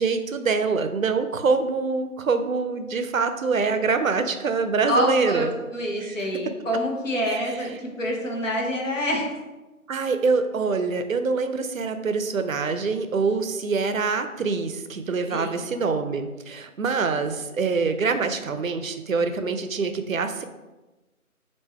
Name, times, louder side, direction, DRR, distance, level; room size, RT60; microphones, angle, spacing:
voice 1, 0.0-5.5 6.0-6.3 7.3-7.5 9.9-20.4, right 4 dB, 70° right, 8 dB, 0.5 m, -25 dB
voice 2, 4.9-9.3 15.3-15.6, equal, 60° left, -1 dB, 1.1 m, -26 dB
3.6 x 2.7 x 4.2 m, 1.1 s
figure-of-eight pair, 160°, 43 cm